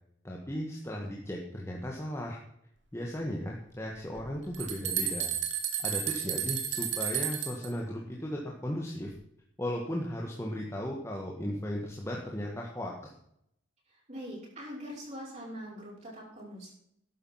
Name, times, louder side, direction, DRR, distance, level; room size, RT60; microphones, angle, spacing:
voice 1, 0.2-2.4 2.9-5.3 5.8-9.1 9.6-13.1, equal, 15° left, -1 dB, 1.6 m, -36 dB
sound 1, 4.1-7.7, right 9 dB, 65° right, 2.2 m, -32 dB
voice 2, 14.1-16.7, equal, 35° right, -5 dB, 6.3 m, -42 dB
12.5 x 9.9 x 5.8 m, 0.72 s
head